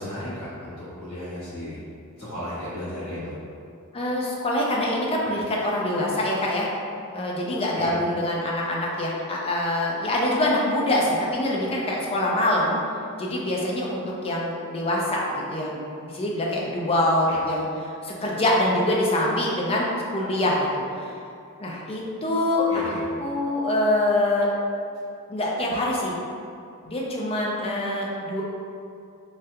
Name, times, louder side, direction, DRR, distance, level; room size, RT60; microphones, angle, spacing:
voice 1, 0.0-1.8 2.1-3.4 7.7-7.9 17.3-17.4 22.7-23.0, left 1 dB, 65° left, -11 dB, 1.3 m, -34 dB
voice 2, 3.9-6.7 7.1-12.8 13.2-21.1 21.6-22.9 23.2-24.5 25.3-26.1 26.8-28.4, left 1 dB, 25° left, -3 dB, 0.4 m, -25 dB
3.2 x 2.3 x 2.8 m, 2.5 s
head